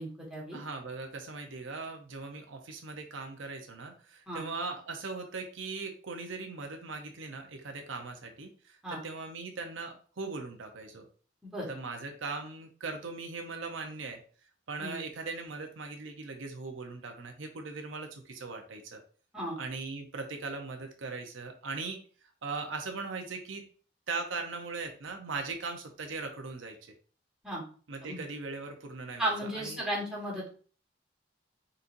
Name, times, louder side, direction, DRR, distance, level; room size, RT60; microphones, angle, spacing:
voice 1, 0.0-0.6 4.3-4.4 8.8-9.0 11.4-11.7 14.8-15.0 19.3-19.6 27.4-27.6 28.0-28.2 29.2-30.5, right 1 dB, 5° right, -5 dB, 1.6 m, -35 dB
voice 2, 0.5-11.1 11.7-14.2 14.7-19.0 19.6-22.0 22.4-23.6 24.1-26.9 27.9-29.8, right 3 dB, 85° right, 4 dB, 0.7 m, -39 dB
4.3 x 3.9 x 2.6 m, 0.41 s
head